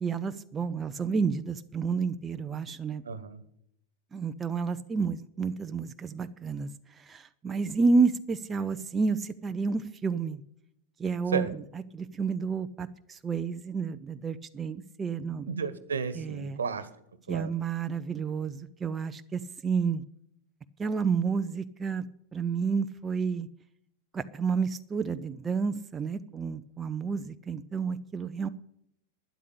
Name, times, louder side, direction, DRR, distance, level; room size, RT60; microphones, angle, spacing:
voice 1, 0.0-3.0 4.1-10.4 11.0-15.5 16.1-16.6 17.3-20.0 20.8-22.0 22.3-23.5 24.1-28.5, right 5 dB, 20° right, 9 dB, 0.6 m, -30 dB
voice 2, 3.0-3.4 11.3-11.5 15.5-16.9 17.3-17.5, right 6 dB, 70° right, 14 dB, 1.3 m, -32 dB
12.0 x 10.5 x 8.4 m, 0.73 s
figure-of-eight pair, 90°, 0 cm